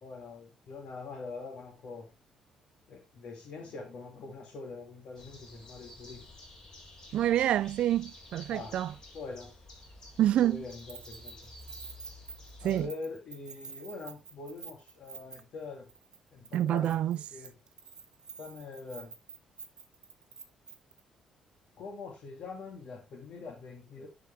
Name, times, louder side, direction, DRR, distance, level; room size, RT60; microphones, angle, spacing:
voice 1, 0.0-2.1 2.9-6.3 8.5-8.7 9.1-9.5 10.4-11.4 12.6-15.9 16.3-17.5 18.4-19.2 21.8-24.1, left 3 dB, 60° left, 2.3 m, -44 dB
sound 1, 5.1-12.9, left 1 dB, 30° left, 4.8 m, -51 dB
voice 2, 7.1-8.9 10.2-10.6 12.6-12.9 16.5-17.2, right 12 dB, 65° right, 0.3 m, -27 dB
Keys jangling, 10.7-15.6 15.9-16.2 16.4-21.0, right 5 dB, 35° right, 1.4 m, -48 dB
11.0 x 4.9 x 3.4 m
cardioid pair, 115°, 2 cm